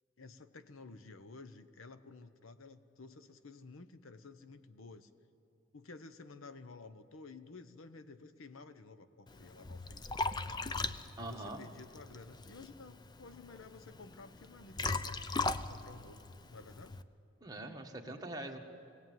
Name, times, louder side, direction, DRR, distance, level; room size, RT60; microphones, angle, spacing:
voice 1, 0.2-5.1 5.7-10.0 10.4-10.6 11.2-15.3 15.7-17.0, left 3 dB, 85° left, 12 dB, 0.9 m, -53 dB
Liquid, 9.3-17.0, left 3 dB, 20° left, 0.5 m, -39 dB
voice 2, 11.2-11.6 17.4-18.6, right 1 dB, 20° right, 2 dB, 1.5 m, -43 dB
22.5 x 17.0 x 9.2 m, 2.6 s
head